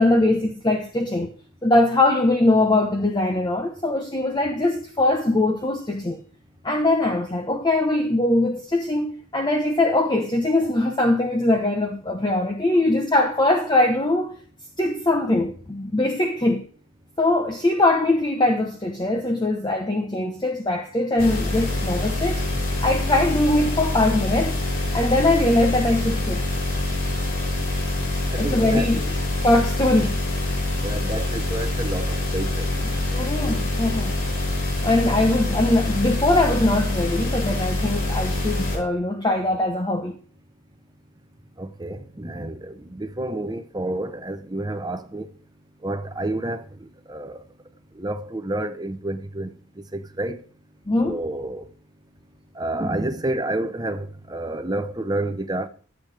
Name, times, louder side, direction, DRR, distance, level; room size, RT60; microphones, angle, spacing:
voice 1, 0.0-1.3 1.6-6.2 6.6-14.4 14.8-16.7 17.2-22.4 22.8-24.6 24.9-26.4 28.4-29.1 29.4-30.2 33.1-34.1 34.8-40.1 50.9-51.2, left 2 dB, 20° left, 0.9 m, -21 dB
sound 1, 21.2-38.8, left 1 dB, 85° left, 6.8 m, -25 dB
voice 2, 28.3-28.9 30.8-32.9 41.6-45.3 45.8-47.4 48.0-49.5 49.9-50.4 51.0-51.6 52.6-55.7, right 1 dB, 20° right, 0.8 m, -29 dB
14.0 x 8.3 x 3.4 m
head